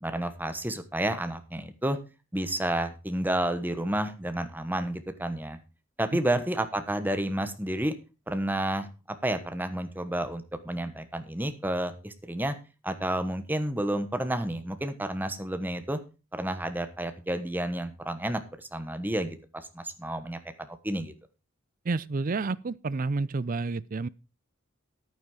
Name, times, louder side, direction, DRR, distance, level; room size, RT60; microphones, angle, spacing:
voice 1, 0.0-2.0 2.3-5.6 6.0-7.9 8.3-12.5 12.8-16.0 16.3-19.4 19.7-21.1, right 1 dB, 10° right, 1.1 m, -30 dB
voice 2, 21.9-24.1, right 3 dB, 40° right, 0.5 m, -30 dB
10.5 x 9.3 x 4.9 m
head